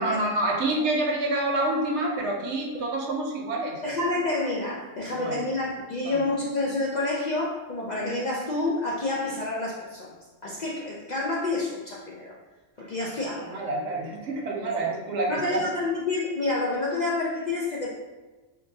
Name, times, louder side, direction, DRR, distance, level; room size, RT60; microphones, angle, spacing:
voice 1, 0.0-3.8 5.1-5.4 6.0-6.2 13.4-15.6, right 2 dB, 75° right, 1 dB, 0.9 m, -27 dB
voice 2, 3.8-10.1 10.4-12.3 12.8-13.6 15.3-17.9, left 2 dB, 55° left, -5 dB, 0.5 m, -28 dB
4.5 x 2.3 x 2.6 m, 1.2 s
omnidirectional pair, 1.2 m